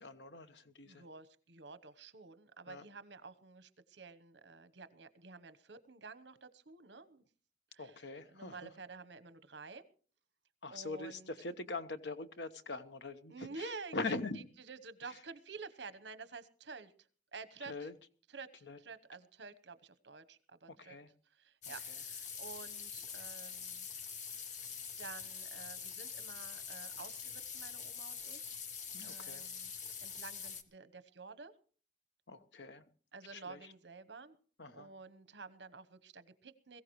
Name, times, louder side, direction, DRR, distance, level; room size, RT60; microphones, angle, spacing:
voice 1, 0.0-1.0 2.7-2.8 7.8-8.7 10.6-14.4 15.1-15.2 17.6-17.9 18.6-18.8 20.8-21.1 21.9-22.0 28.9-29.4 32.3-32.8 33.3-33.7 34.6-34.9, left 3 dB, 75° left, 1.2 m, -43 dB
voice 2, 0.9-7.2 7.7-7.9 8.3-9.8 10.7-11.3 13.3-14.1 14.7-16.9 17.3-17.7 18.3-20.9 21.4-24.5 25.0-28.6 29.0-29.7 30.0-31.5 33.1-34.4 34.7-36.8, right 4 dB, 75° right, 1.1 m, -51 dB
sound 1, 21.6-30.6, left 6 dB, 45° left, 1.2 m, -45 dB
21.5 x 15.5 x 3.2 m
head